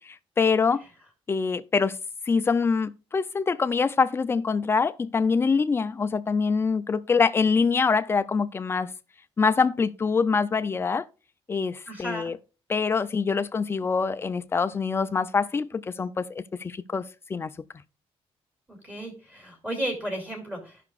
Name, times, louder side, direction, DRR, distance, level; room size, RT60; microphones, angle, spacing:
voice 1, 0.4-0.8 1.3-2.0 2.3-8.9 9.4-11.1 11.5-12.4 12.7-17.5, left 5 dB, 25° left, 0.4 m, -24 dB
voice 2, 11.9-12.3 18.7-20.8, right 1 dB, 15° right, 2.7 m, -34 dB
15.5 x 5.8 x 2.4 m
cardioid pair, 155°, 11 cm